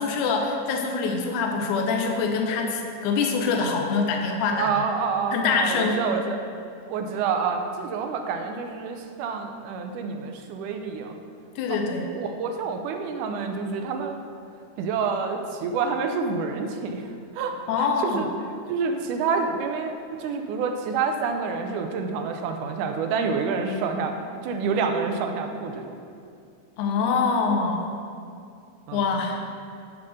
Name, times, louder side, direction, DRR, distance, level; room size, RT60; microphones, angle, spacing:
voice 1, 0.0-4.7 5.3-6.0 11.6-12.1 17.7-18.3 26.8-27.9 28.9-29.4, left 4 dB, 80° left, 2 dB, 2.2 m, -24 dB
voice 2, 4.5-6.4 6.9-11.2 11.7-11.8 12.1-14.2 14.8-17.1 17.3-18.3 18.7-19.9 20.2-24.2 24.4-26.0 28.9-29.1, right 5 dB, 85° right, 5 dB, 2.2 m, -28 dB
9.7 x 3.6 x 6.3 m, 2.4 s
omnidirectional pair, 3.6 m